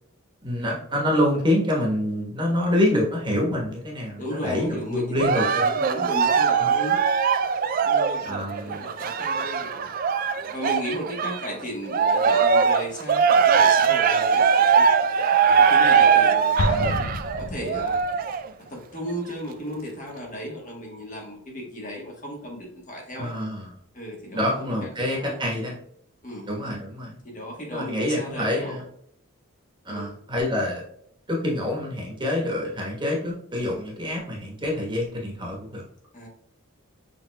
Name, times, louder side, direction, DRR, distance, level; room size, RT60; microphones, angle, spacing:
voice 1, 0.4-5.7 6.6-6.7 8.2-8.8 23.1-23.7 24.3-25.7 26.5-27.2 27.7-28.8 29.8-30.8 31.3-35.8, left 1 dB, 20° right, -2 dB, 1.2 m, -26 dB
voice 2, 4.2-7.0 7.8-9.9 10.5-14.9 15.4-17.0 17.4-18.1 18.7-23.3 23.9-25.4 26.2-26.5 27.2-28.8 29.9-30.1 36.1-36.3, equal, 40° left, -1 dB, 1.2 m, -35 dB
Cheering, 5.2-11.5 11.9-18.5 19.1-19.2, right 6 dB, 45° right, 0.3 m, -21 dB
Explosion, 16.6-18.3, left 2 dB, 85° left, 0.5 m, -28 dB
6.3 x 3.5 x 2.2 m, 0.69 s
head